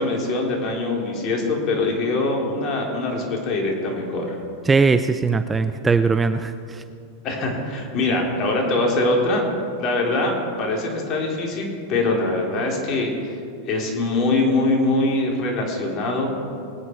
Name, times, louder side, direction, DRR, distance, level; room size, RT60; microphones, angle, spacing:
voice 1, 0.0-4.4 7.2-9.4 9.8-13.4 13.7-16.3, left 2 dB, 40° left, -1 dB, 4.0 m, -23 dB
voice 2, 4.6-6.8, right 4 dB, 15° right, 11 dB, 0.5 m, -20 dB
22.5 x 9.6 x 4.8 m, 2.4 s
hypercardioid pair, 115°, 0 cm